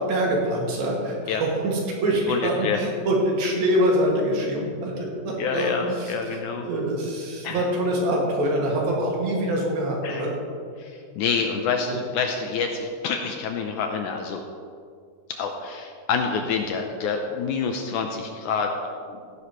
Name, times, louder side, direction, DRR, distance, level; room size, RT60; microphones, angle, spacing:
voice 1, 0.1-10.3 11.9-12.0, right 1 dB, 85° right, -2 dB, 3.9 m, -25 dB
voice 2, 2.3-2.8 5.4-6.6 7.4-7.6 10.0-10.3 10.8-10.9 11.2-14.4 15.4-18.7 19.1-19.2, left 5 dB, 80° left, 4 dB, 1.9 m, -27 dB
14.5 x 11.0 x 3.1 m, 2.2 s
omnidirectional pair, 4.1 m